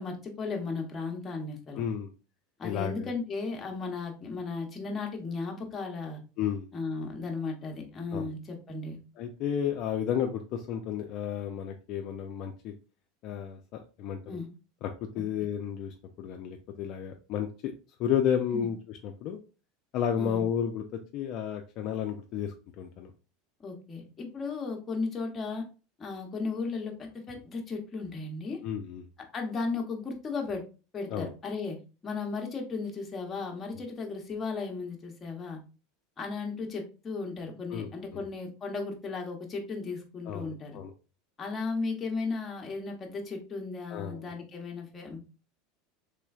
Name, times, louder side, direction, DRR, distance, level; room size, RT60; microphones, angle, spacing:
voice 1, 0.0-1.8 2.6-6.2 6.7-9.0 14.3-14.5 18.5-18.7 20.2-20.5 23.6-25.6 26.0-28.6 29.3-30.6 30.9-35.6 36.2-40.8 41.4-45.2, left 4 dB, 25° left, 2 dB, 0.8 m, -35 dB
voice 2, 1.8-2.1 2.6-3.1 6.4-6.7 8.1-8.3 9.2-12.7 13.2-13.6 14.0-14.2 14.8-17.7 18.0-19.4 19.9-23.1 28.6-29.0 31.1-31.3 37.7-38.2 40.3-40.9 43.9-44.3, left 8 dB, 50° left, 4 dB, 0.4 m, -32 dB
3.2 x 3.0 x 2.3 m, 0.33 s
supercardioid pair, 125°, 0 cm